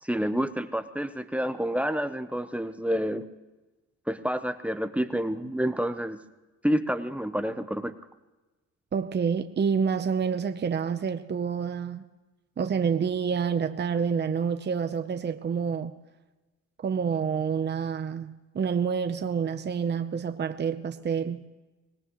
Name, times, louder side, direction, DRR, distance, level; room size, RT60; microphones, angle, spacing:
voice 1, 0.0-3.2 4.1-6.2 6.6-7.9, equal, 5° right, 10 dB, 0.8 m, -28 dB
voice 2, 8.9-12.0 12.6-15.9 16.8-21.4, right 6 dB, 35° right, 8 dB, 0.8 m, -28 dB
24.5 x 18.5 x 3.1 m, 1.1 s
cardioid pair, 90°, 30 cm